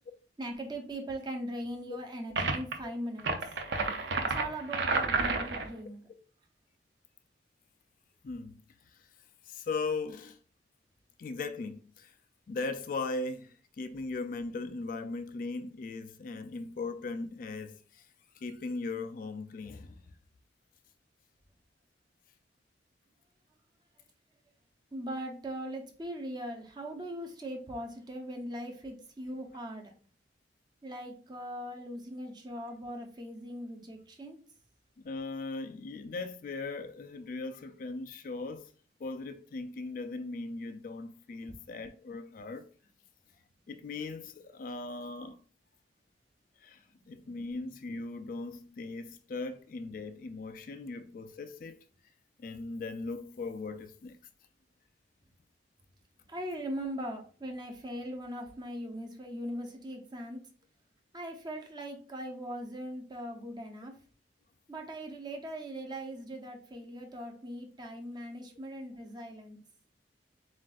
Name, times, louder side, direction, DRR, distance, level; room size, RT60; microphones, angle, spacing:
voice 1, 0.4-3.3 4.2-6.0 24.9-29.9 30.8-34.4 41.5-41.6 47.2-47.3 56.3-60.4 61.1-63.9 64.7-69.6, right 1 dB, 25° right, 0.7 m, -40 dB
sound 1, 2.4-2.7 3.2-5.7, right 3 dB, 75° right, 0.6 m, -30 dB
voice 2, 8.2-8.6 9.5-10.4 11.2-12.1 12.5-18.0 18.4-20.0 29.5-29.6 35.0-38.7 39.0-42.6 43.7-45.4 46.6-46.8 47.1-51.8 52.4-54.2, left 3 dB, 50° left, 0.3 m, -38 dB
7.3 x 2.5 x 2.4 m
head